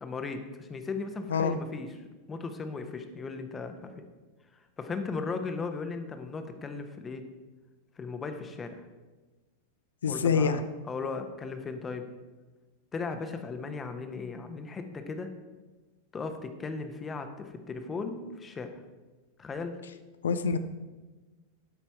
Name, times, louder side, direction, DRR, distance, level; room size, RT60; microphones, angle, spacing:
voice 1, 0.0-1.9 2.3-3.9 4.8-7.2 8.0-8.9 10.1-10.6 10.8-12.0 12.9-15.3 16.1-18.7 19.4-19.7, left 4 dB, 20° left, 7 dB, 1.0 m, -36 dB
voice 2, 10.0-10.6 20.2-20.6, left 5 dB, 65° left, 10 dB, 0.5 m, -26 dB
12.0 x 5.7 x 4.6 m, 1.2 s
figure-of-eight pair, 90°, 0 cm